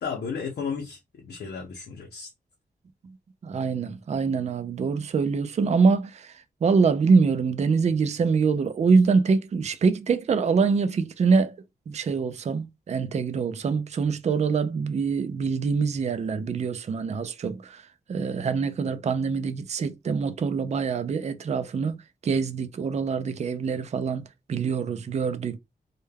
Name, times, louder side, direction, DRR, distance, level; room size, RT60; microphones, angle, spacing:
voice 1, 0.0-2.3, left 6 dB, 85° left, 0.6 m, -33 dB
voice 2, 3.4-11.6 11.9-17.8 18.1-22.0 22.2-25.6, right 5 dB, 45° right, 0.4 m, -24 dB
2.2 x 2.2 x 3.3 m
wide cardioid pair, 105°, 16 cm